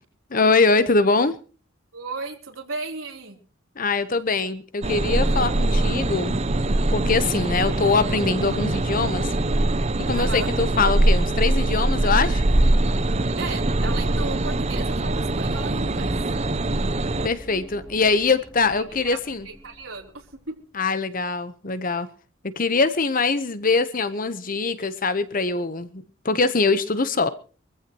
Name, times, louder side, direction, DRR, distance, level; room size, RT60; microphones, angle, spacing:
voice 1, 0.3-1.4 3.8-6.4 6.9-9.3 10.1-12.4 17.2-19.5 20.7-22.1 22.6-27.3, left 4 dB, 40° left, 1.0 m, -23 dB
voice 2, 1.9-3.4 10.1-10.5 13.4-16.1 18.7-19.2 19.4-20.5, right 3 dB, 80° right, 3.8 m, -35 dB
sound 1, 4.8-17.3, right 2 dB, 30° right, 0.7 m, -22 dB
sound 2, 15.8-20.6, equal, 10° right, 3.7 m, -43 dB
24.0 x 15.0 x 3.0 m
head